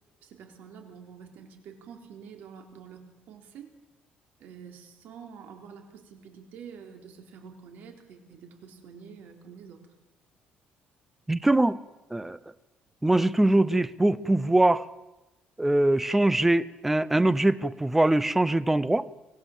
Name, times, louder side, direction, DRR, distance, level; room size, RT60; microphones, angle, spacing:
voice 1, 0.2-3.7 4.4-9.9, right 7 dB, 70° right, 4 dB, 3.8 m, -47 dB
voice 2, 11.3-11.8 12.1-12.4 13.0-14.8 15.6-19.1, right 1 dB, 10° right, 17 dB, 0.7 m, -22 dB
24.5 x 17.5 x 7.4 m, 1.0 s
cardioid pair, 145°, 3 cm